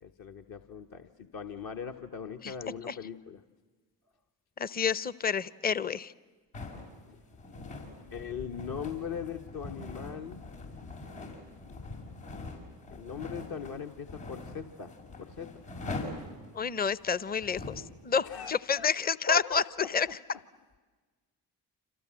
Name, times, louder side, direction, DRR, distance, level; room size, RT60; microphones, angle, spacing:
voice 1, 0.0-3.4 7.1-7.2 8.1-10.4 11.2-11.3 11.8-11.9 12.9-14.9 15.2-15.5 18.2-18.9 19.3-19.6, left 7 dB, 50° left, 4 dB, 1.4 m, -40 dB
voice 2, 4.6-6.1 16.5-19.6 19.9-20.2, left 6 dB, 20° left, 18 dB, 0.8 m, -29 dB
sound 1, 6.5-17.9, left 2 dB, 75° left, 6.3 m, -43 dB
29.5 x 27.0 x 7.6 m, 1.4 s
hypercardioid pair, 45°, 47 cm